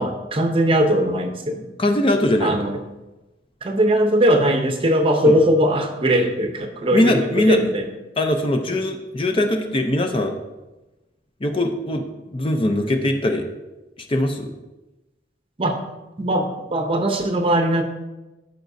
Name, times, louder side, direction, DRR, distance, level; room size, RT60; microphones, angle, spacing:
voice 1, 0.0-1.7 2.4-2.8 3.6-7.9 15.6-15.8 16.2-17.8, right 1 dB, 30° right, 5 dB, 0.7 m, -20 dB
voice 2, 1.8-2.6 5.3-5.4 6.9-7.6 8.2-10.3 11.4-13.4 14.1-14.5, left 1 dB, 30° left, 5 dB, 0.6 m, -21 dB
13.5 x 5.1 x 2.7 m, 1.1 s
head